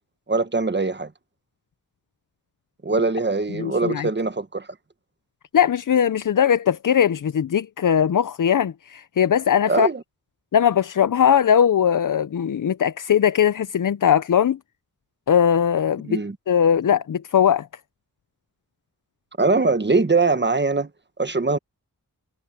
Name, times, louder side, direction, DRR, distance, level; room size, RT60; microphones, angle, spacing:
voice 1, 0.3-1.1 2.8-4.7 9.7-10.0 16.1-16.3 19.4-20.9 21.2-21.6, right 3 dB, 30° right, 1.4 m, -22 dB
voice 2, 3.5-4.1 5.5-9.9 10.5-14.6 15.3-17.7, left 8 dB, 60° left, 0.6 m, -20 dB
wide cardioid pair, 70°, 35 cm